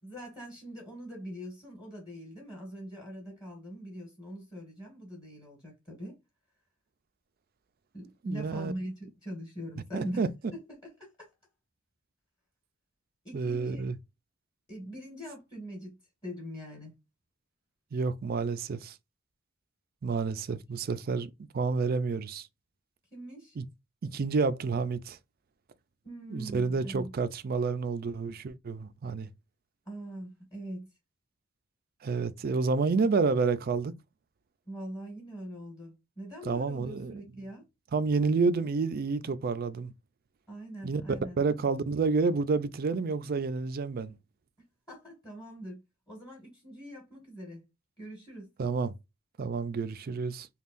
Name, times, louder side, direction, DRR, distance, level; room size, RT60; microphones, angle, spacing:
voice 1, 0.0-6.2 7.9-10.2 10.8-11.3 13.2-13.8 14.7-16.9 23.1-23.6 26.0-27.1 29.8-30.9 34.7-37.6 40.5-41.4 44.9-47.6 48.0-48.5, equal, 20° left, 1.7 m, -42 dB
voice 2, 8.2-8.7 9.9-10.3 13.3-13.9 17.9-18.9 20.0-21.3 21.5-22.5 23.6-23.7 24.1-25.2 26.3-29.3 32.0-33.9 36.4-37.5 37.9-39.9 40.8-41.0 41.4-44.1 48.6-48.9 49.4-50.5, right 4 dB, 45° right, 0.4 m, -29 dB
5.5 x 2.3 x 2.5 m
head